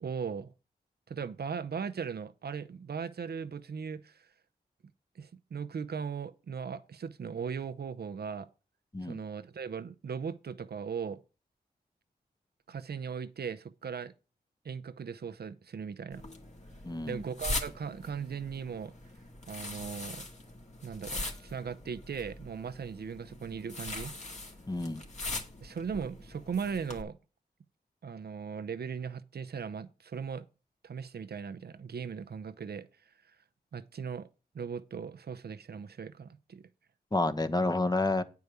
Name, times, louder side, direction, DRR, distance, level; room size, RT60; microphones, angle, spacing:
voice 1, 0.0-0.5 1.1-4.3 5.2-8.5 9.0-11.2 12.7-14.1 14.6-16.2 17.1-18.9 19.5-20.2 20.8-24.1 25.6-27.2 28.0-30.4 30.8-32.9 33.7-34.3 34.5-36.7, right 6 dB, 70° right, 0.7 m, -38 dB
sound 1, 16.1-27.0, left 2 dB, 45° left, 1.9 m, -41 dB
voice 2, 16.8-17.2 24.7-25.0 37.1-38.2, left 2 dB, 25° left, 1.0 m, -29 dB
9.4 x 4.7 x 6.8 m
wide cardioid pair, 70°, 17 cm